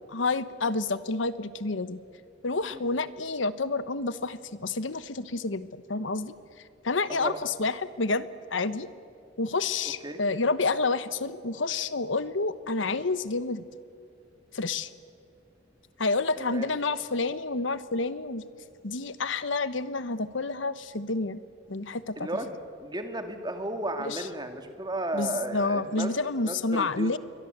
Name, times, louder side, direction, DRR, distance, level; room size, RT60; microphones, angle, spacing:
voice 1, 0.1-2.0 2.4-6.4 6.8-8.9 9.4-13.6 14.5-14.9 16.0-18.4 18.8-21.4 21.7-22.3 24.0-24.3 25.1-27.2, left 3 dB, 80° left, 14 dB, 1.1 m, -29 dB
voice 2, 7.1-7.5 10.0-10.2 16.4-16.7 22.2-26.2 26.4-27.1, right 1 dB, 20° right, 6 dB, 2.1 m, -34 dB
29.0 x 23.0 x 8.1 m, 2.5 s
head